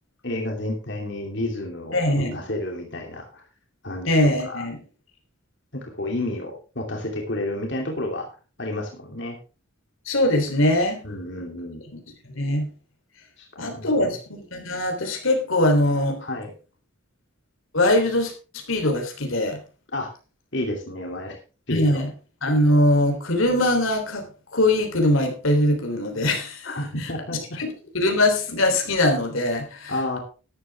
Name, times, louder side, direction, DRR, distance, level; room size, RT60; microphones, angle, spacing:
voice 1, 0.2-3.4 3.8-4.6 5.7-8.3 8.6-9.4 11.0-11.8 13.4-14.1 16.2-16.5 19.9-20.1 20.5-21.4 21.7-22.0 26.6-27.6 29.9-30.2, left 1 dB, 60° left, 1 dB, 2.9 m, -31 dB
voice 2, 1.9-2.4 4.1-4.8 10.1-11.0 12.4-12.7 13.6-16.2 17.7-19.6 21.7-22.1 22.4-26.7 27.6-29.9, left 1 dB, 85° left, 4 dB, 3.5 m, -22 dB
13.0 x 11.0 x 3.5 m, 0.33 s
head